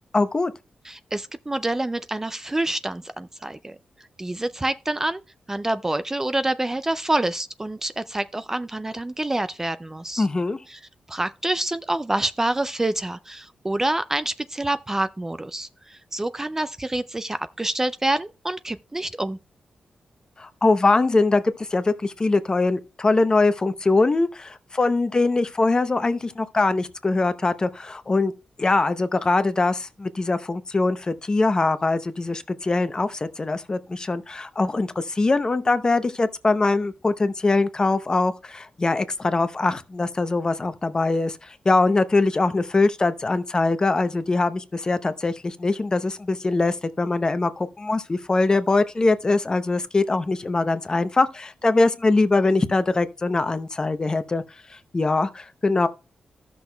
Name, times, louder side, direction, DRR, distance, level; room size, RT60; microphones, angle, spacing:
voice 1, 0.1-0.5 10.2-10.6 20.4-21.4 21.7-28.3 28.6-54.4 54.9-55.9, left 3 dB, 30° left, 0.7 m, -22 dB
voice 2, 0.9-3.8 4.2-5.2 5.5-10.3 10.7-10.8 11.1-19.4, right 1 dB, 15° right, 0.3 m, -27 dB
14.5 x 6.1 x 2.3 m
cardioid pair, 90°, 2 cm